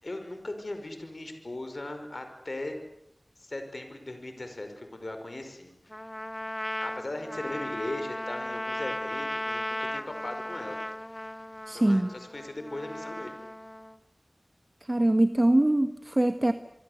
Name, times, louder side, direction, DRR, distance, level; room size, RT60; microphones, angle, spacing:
voice 1, 0.0-2.7 3.4-5.7 6.8-10.8 11.7-13.4, left 2 dB, 70° left, 6 dB, 5.4 m, -38 dB
Trumpet, 5.9-14.0, left 1 dB, 25° left, 1.1 m, -36 dB
voice 2, 11.7-12.1 14.9-16.5, right 1 dB, 35° right, 9 dB, 1.5 m, -23 dB
28.5 x 24.5 x 8.3 m, 0.72 s
wide cardioid pair, 45°, 0 cm